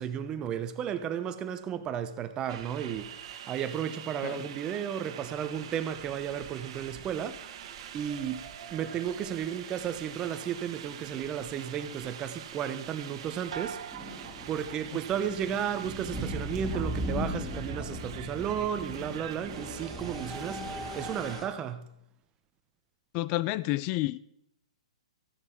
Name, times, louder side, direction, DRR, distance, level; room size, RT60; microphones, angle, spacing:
voice 1, 0.0-7.7 7.9-14.1 14.5-21.9, right 9 dB, 20° right, 0.9 m, -34 dB
sound 1, 2.5-21.4, right 9 dB, 55° right, 1.4 m, -45 dB
sound 2, 8.7-8.8 10.1-10.2 10.4-10.5 10.7-10.9 13.4-21.5, equal, 10° left, 3.5 m, -38 dB
sound 3, 13.5-15.2 15.6-16.2, right 7 dB, 80° right, 0.8 m, -45 dB
voice 2, 23.1-24.2, left 18 dB, 35° left, 0.5 m, -29 dB
14.5 x 11.0 x 4.6 m
hypercardioid pair, 140°, 4 cm